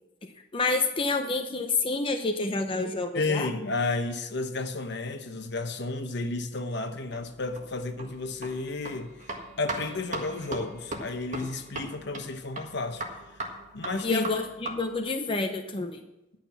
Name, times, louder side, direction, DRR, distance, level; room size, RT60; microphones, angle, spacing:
voice 1, 0.2-3.5 14.0-16.0, left 3 dB, 30° left, 0.7 m, -28 dB
voice 2, 3.1-9.1 9.6-13.0 13.7-14.2, left 3 dB, 65° left, 1.0 m, -32 dB
sound 1, 6.9-15.0, right 2 dB, 40° right, 1.6 m, -39 dB
11.5 x 5.9 x 7.0 m
head